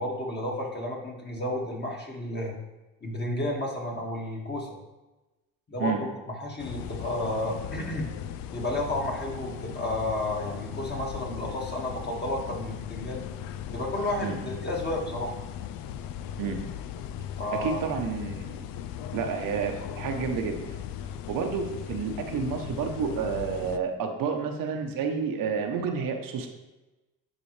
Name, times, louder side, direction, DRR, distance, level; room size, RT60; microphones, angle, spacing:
voice 1, 0.0-2.5 3.0-4.7 5.7-8.1 8.5-13.2 13.7-15.3 17.4-17.8, left 1 dB, 30° left, -1 dB, 1.9 m, -32 dB
sound 1, 6.6-23.8, left 10 dB, 75° left, 0.5 m, -38 dB
voice 2, 17.5-18.7 19.1-20.6 21.3-26.5, right 6 dB, 70° right, 3 dB, 1.0 m, -30 dB
10.0 x 4.1 x 3.3 m, 1.1 s
supercardioid pair, 80°, 35 cm